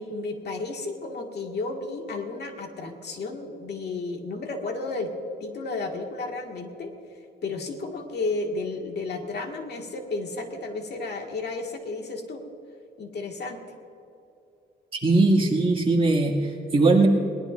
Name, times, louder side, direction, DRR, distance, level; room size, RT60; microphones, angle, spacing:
voice 1, 0.0-5.1 5.4-6.9 7.4-12.5 13.0-13.6, left 3 dB, 60° left, 2 dB, 1.9 m, -32 dB
voice 2, 15.0-17.1, right 2 dB, 30° right, -1 dB, 2.3 m, -20 dB
22.5 x 19.0 x 2.6 m, 2.7 s
wide cardioid pair, 135°, 19 cm